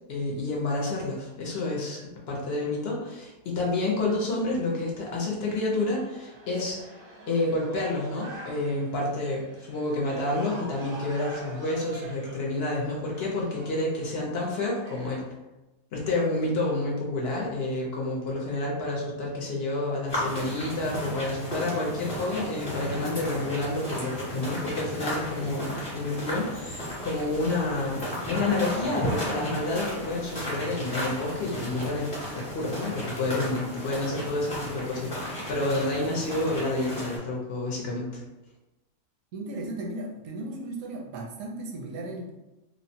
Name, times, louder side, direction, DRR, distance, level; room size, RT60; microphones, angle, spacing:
voice 1, 0.1-2.0 2.3-6.9 7.3-15.2 15.9-38.2, left 2 dB, 60° left, -3 dB, 0.7 m, -29 dB
sound 1, 5.1-15.3, right 1 dB, 55° right, 0.6 m, -46 dB
sound 2, 20.1-37.2, equal, 30° left, 0.9 m, -34 dB
voice 2, 39.3-42.3, right 2 dB, 75° right, 0 dB, 1.0 m, -36 dB
3.1 x 2.1 x 2.6 m, 1.0 s
omnidirectional pair, 1.5 m